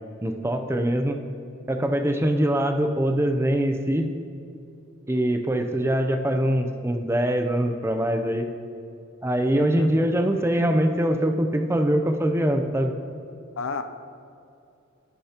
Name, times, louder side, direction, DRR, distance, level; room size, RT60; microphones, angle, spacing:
voice 1, 0.2-1.2 1.7-4.1 5.1-8.5 9.2-12.9, right 1 dB, 10° right, 6 dB, 0.5 m, -23 dB
voice 2, 9.6-9.9 10.5-10.8 13.6-13.8, left 4 dB, 65° left, 9 dB, 0.5 m, -33 dB
12.0 x 11.5 x 2.9 m, 2.5 s
head